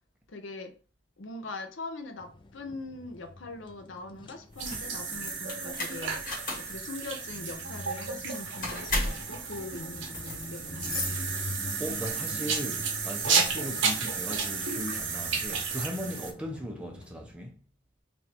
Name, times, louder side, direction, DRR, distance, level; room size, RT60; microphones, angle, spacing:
voice 1, 0.3-0.8 1.2-6.2 6.6-11.4 16.1-16.2, left 2 dB, 70° left, 0.6 m, -42 dB
sound 1, 2.2-17.3, left 2 dB, 25° left, 0.4 m, -45 dB
sound 2, 4.5-11.8, left 2 dB, 45° left, 1.3 m, -36 dB
sound 3, 4.6-16.3, right 5 dB, 70° right, 0.8 m, -32 dB
voice 2, 11.8-17.6, equal, 5° right, 0.7 m, -38 dB
3.2 x 2.6 x 4.2 m
head